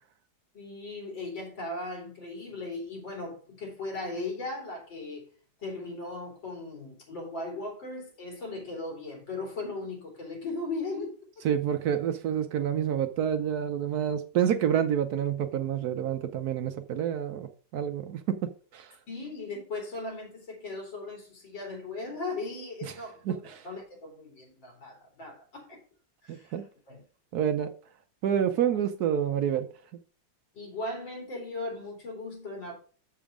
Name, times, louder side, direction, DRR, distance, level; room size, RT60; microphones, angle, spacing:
voice 1, 0.5-5.3 5.6-11.1 19.1-25.8 26.2-26.6 26.9-27.0 30.5-32.7, left 2 dB, 80° left, 3.9 m, -38 dB
voice 2, 11.4-19.0 23.3-23.6 26.3-26.6 27.3-27.7 28.2-29.7, right 9 dB, 65° right, 1.0 m, -28 dB
7.1 x 7.0 x 4.9 m
omnidirectional pair, 2.0 m